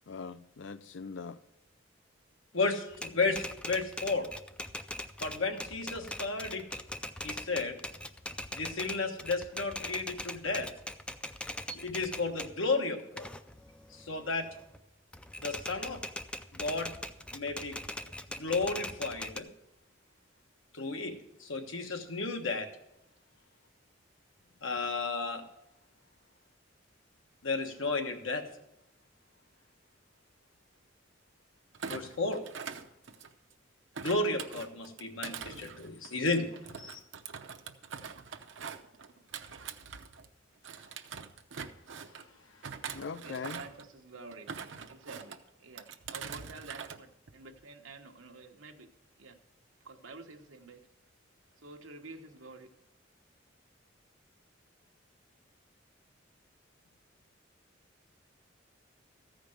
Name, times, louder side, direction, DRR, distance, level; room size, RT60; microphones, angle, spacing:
voice 1, 0.1-1.4 42.9-43.6, left 5 dB, 65° left, 0.5 m, -41 dB
voice 2, 2.5-4.3 5.2-6.6 7.2-7.8 8.5-10.7 11.7-13.3 13.9-14.4 15.4-16.0 16.5-16.9 17.3-17.8 18.3-19.5 20.7-21.1 21.4-22.7 24.6-25.4 27.4-28.4 31.9-32.4 34.0-36.5 36.8-37.0, left 3 dB, 80° left, 1.3 m, -33 dB
Typewriter, 2.9-12.6 13.0-14.8 15.1-19.4, left 1 dB, 5° left, 0.3 m, -41 dB
Thump thud, 31.7-33.5 33.9-40.3 40.6-42.2 42.6-43.9 44.3-45.4 45.8-47.0 47.3-47.6, right 6 dB, 65° right, 0.7 m, -43 dB
voice 3, 43.2-44.5 44.9-48.9 49.2-49.4 49.8-50.8 51.6-52.7, right 3 dB, 85° right, 1.1 m, -49 dB
14.0 x 5.1 x 7.7 m
head